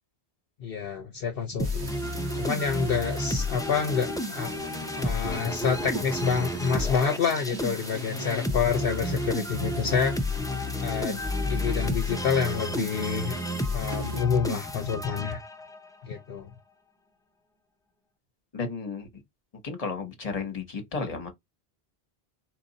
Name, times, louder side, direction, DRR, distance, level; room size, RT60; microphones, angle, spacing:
voice 1, 0.6-1.9 2.3-4.5 5.0-10.2 10.8-13.4 13.7-15.4 16.0-16.5, left 6 dB, 60° left, 0.9 m, -28 dB
sound 1, 1.6-15.9, left 1 dB, 5° left, 0.4 m, -31 dB
sound 2, 1.6-14.2, right 3 dB, 80° right, 1.4 m, -43 dB
voice 2, 18.5-19.1 19.6-21.3, left 4 dB, 35° left, 1.2 m, -33 dB
4.5 x 2.6 x 4.0 m
omnidirectional pair, 1.1 m